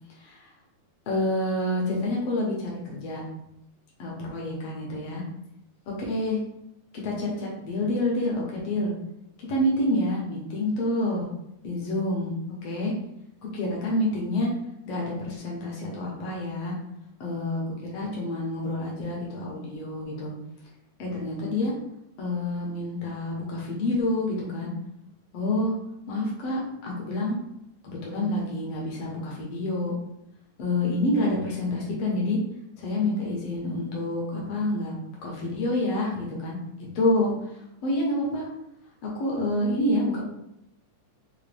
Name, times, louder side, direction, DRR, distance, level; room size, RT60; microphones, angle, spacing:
voice 1, 1.1-3.2 4.0-5.2 6.1-6.4 7.0-8.9 9.5-11.3 11.6-12.3 12.6-12.9 13.5-14.5 14.8-16.7 17.2-17.6 17.9-20.3 21.0-21.7 22.2-24.7 25.3-25.7 26.1-27.3 27.8-29.9 30.6-32.4 32.8-34.9 35.2-36.6 36.9-37.3 37.8-38.5 39.2-40.2, left 1 dB, 70° left, -3 dB, 1.6 m, -27 dB
5.0 x 2.2 x 3.2 m, 0.82 s
omnidirectional pair, 3.6 m